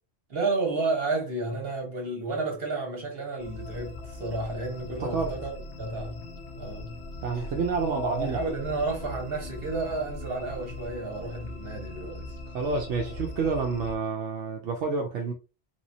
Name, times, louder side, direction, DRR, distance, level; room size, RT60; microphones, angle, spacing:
voice 1, 0.3-5.5 5.8-6.2 6.6-7.0 7.9-12.3 13.0-13.1, right 3 dB, 55° right, 1.5 m, -31 dB
sound 1, 3.4-14.0, left 2 dB, 90° left, 1.1 m, -40 dB
voice 2, 5.0-5.3 7.2-8.4 12.5-15.3, right 4 dB, 80° right, 1.0 m, -29 dB
3.5 x 3.0 x 2.7 m
omnidirectional pair, 1.2 m